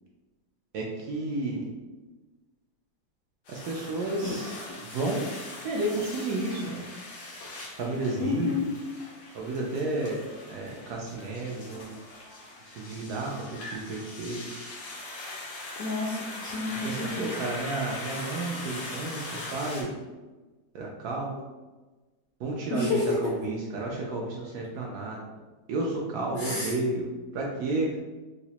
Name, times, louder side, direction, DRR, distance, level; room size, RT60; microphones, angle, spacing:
voice 1, 0.7-1.7 3.5-4.6 4.8-5.3 5.6-6.9 7.8-8.5 9.3-10.2 10.5-12.0 12.7-14.4 16.7-20.0 20.7-21.4 22.4-25.2 25.7-27.1 27.3-27.9, right 2 dB, 70° right, -2 dB, 1.0 m, -31 dB
sound 1, 3.4-19.8, left 2 dB, 90° left, 1.6 m, -41 dB
voice 2, 8.2-8.7 15.8-17.3 22.7-23.3 26.3-26.7, left 3 dB, 70° left, -3 dB, 0.9 m, -30 dB
4.8 x 2.0 x 2.8 m, 1.2 s
omnidirectional pair, 2.0 m